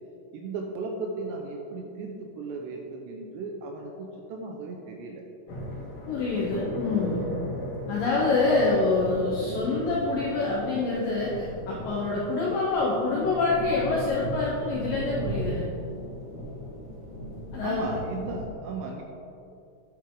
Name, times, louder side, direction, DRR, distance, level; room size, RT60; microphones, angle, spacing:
voice 1, 0.3-5.2 17.6-19.0, right 3 dB, 80° right, 2 dB, 2.6 m, -36 dB
sound 1, 5.5-18.5, equal, 50° left, 3.2 m, -36 dB
voice 2, 6.1-7.3 7.9-15.7 17.5-18.0, left 3 dB, 75° left, -4 dB, 2.0 m, -26 dB
10.0 x 9.1 x 3.9 m, 2.7 s
omnidirectional pair, 5.5 m